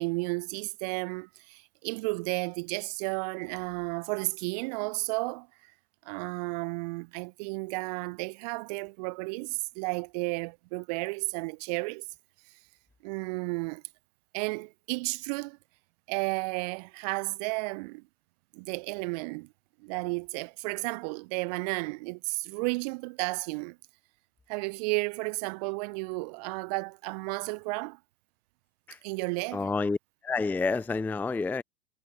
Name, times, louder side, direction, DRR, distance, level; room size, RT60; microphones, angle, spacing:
voice 1, 0.0-5.5 6.1-12.0 13.0-13.8 14.3-15.6 16.1-18.0 18.5-19.5 19.8-23.8 24.5-28.0 29.0-29.7, right 29 dB, 45° right, 0.7 m, -33 dB
voice 2, 29.5-30.0 30.2-31.6, left 4 dB, 5° left, 0.5 m, -29 dB
figure-of-eight pair, 90°, 30 cm